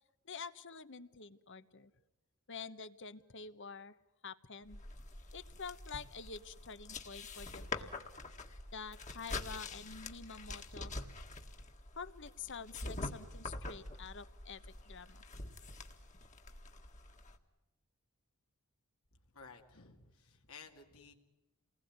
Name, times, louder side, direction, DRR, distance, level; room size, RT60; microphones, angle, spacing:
voice 1, 0.2-1.9 2.5-3.9 4.2-4.8 5.3-8.0 8.7-10.9 12.0-15.2, left 5 dB, 55° left, 13 dB, 1.1 m, -48 dB
sound 1, 4.7-17.4, left 2 dB, 35° left, 1.9 m, -46 dB
voice 2, 19.3-21.1, left 5 dB, 70° left, 2 dB, 2.4 m, -55 dB
29.0 x 20.5 x 9.6 m, 1.0 s
head